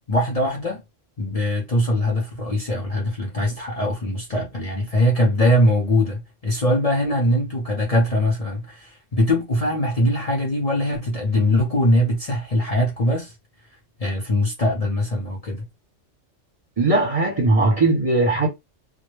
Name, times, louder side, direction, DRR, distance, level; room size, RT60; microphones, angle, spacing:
voice 1, 0.1-0.8 1.2-13.3 14.0-15.7, left 1 dB, 40° left, 0.6 m, -22 dB
voice 2, 16.8-18.5, right 2 dB, 35° right, 0.7 m, -19 dB
2.2 x 2.1 x 3.1 m
omnidirectional pair, 1.2 m